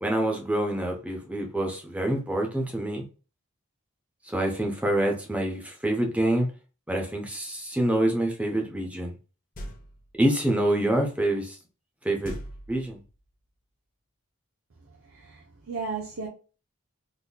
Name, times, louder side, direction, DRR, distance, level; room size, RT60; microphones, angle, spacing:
voice 1, 0.0-3.0 4.3-6.5 6.9-9.1 10.2-11.6 12.0-12.4 12.7-13.0, right 1 dB, 5° right, 0.7 m, -26 dB
sound 1, 9.5-10.2 12.2-13.3, equal, 40° left, 0.7 m, -40 dB
voice 2, 15.1-16.3, right 4 dB, 75° right, 0.6 m, -34 dB
3.9 x 2.8 x 2.2 m
head